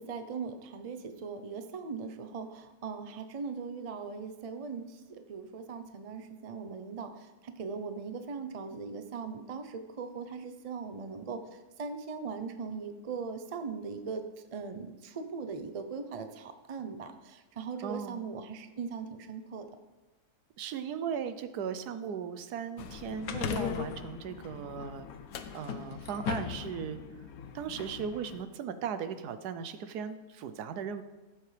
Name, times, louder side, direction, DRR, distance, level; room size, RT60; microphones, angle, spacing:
voice 1, 0.0-14.2 14.5-19.7, right 5 dB, 50° right, 8 dB, 0.4 m, -40 dB
voice 2, 17.8-18.2 20.6-25.1 25.5-27.0 27.5-31.0, right 7 dB, 85° right, 11 dB, 1.2 m, -37 dB
sound 1, 22.8-28.4, left 8 dB, 70° left, 1.1 m, -38 dB
14.5 x 7.8 x 3.3 m, 1.1 s
omnidirectional pair, 1.7 m